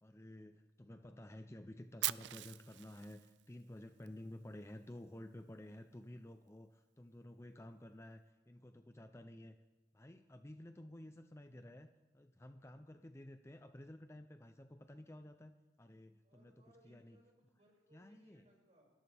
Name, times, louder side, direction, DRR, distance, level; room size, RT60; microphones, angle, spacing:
voice 1, 0.0-9.6 9.9-11.9 12.1-16.5 16.8-17.2 17.9-18.4, left 1 dB, 15° left, 8 dB, 0.5 m, -53 dB
Fire, 2.0-4.1, right 16 dB, 90° right, 0.4 m, -41 dB
voice 2, 16.2-18.9, right 1 dB, 40° right, -2 dB, 5.7 m, -69 dB
28.0 x 13.5 x 3.4 m, 1.2 s
head